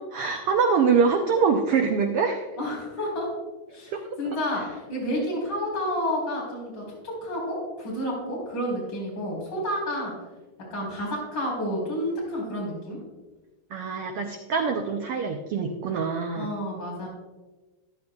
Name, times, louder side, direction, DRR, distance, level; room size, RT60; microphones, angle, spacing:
voice 1, 0.0-2.5 3.9-4.0 4.5-4.6 13.7-16.5, right 5 dB, 85° right, 4 dB, 1.3 m, -24 dB
voice 2, 2.6-3.3 3.7-10.1 10.7-13.0 16.3-17.1, equal, 35° left, -5 dB, 4.2 m, -30 dB
14.0 x 11.5 x 2.4 m, 1.2 s
omnidirectional pair, 3.5 m